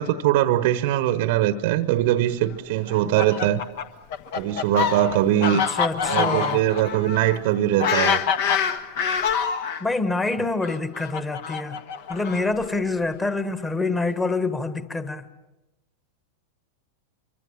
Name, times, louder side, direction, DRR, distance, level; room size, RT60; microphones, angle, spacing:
voice 1, 0.0-3.6 4.3-5.6 6.1-8.2, right 12 dB, 50° right, 1.0 m, -21 dB
Fowl, 2.9-9.8 10.6-12.7, left 7 dB, 50° left, 1.5 m, -26 dB
voice 2, 5.5-6.6 9.8-11.8 12.1-15.3, left 3 dB, 10° left, 1.7 m, -26 dB
25.5 x 24.5 x 7.4 m
figure-of-eight pair, 90°, 0 cm